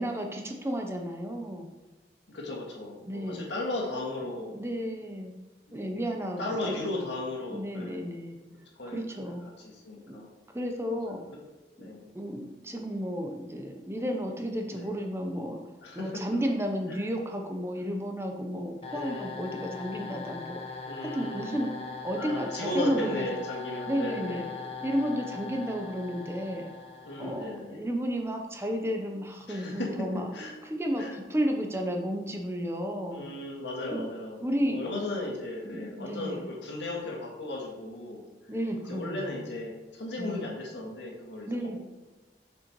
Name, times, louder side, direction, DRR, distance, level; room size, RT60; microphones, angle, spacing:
voice 1, 0.0-1.7 3.1-3.5 4.5-5.3 5.7-7.0 7.5-8.4 8.9-9.5 10.1-10.2 10.5-11.2 11.8-15.6 15.9-20.8 21.1-21.7 22.0-23.3 23.9-24.4 24.8-26.7 27.2-30.3 30.6-33.3 33.9-34.0 34.4-34.8 35.6-36.4 38.5-39.6 40.2-40.5 41.5-41.8, equal, 15° right, 3 dB, 0.7 m, -32 dB
voice 2, 2.3-4.6 5.8-6.0 6.4-8.1 8.8-10.3 10.9-11.2 11.8-12.0 14.7-15.0 15.8-16.1 16.9-17.0 18.9-19.4 20.8-21.7 22.2-24.5 27.0-27.8 29.5-30.1 30.3-30.5 31.0-31.2 33.1-38.2 38.9-41.8, left 2 dB, 90° left, -2 dB, 2.0 m, -36 dB
sound 1, 18.8-27.7, left 4 dB, 35° left, 1.0 m, -40 dB
7.3 x 6.4 x 3.1 m, 1.2 s
head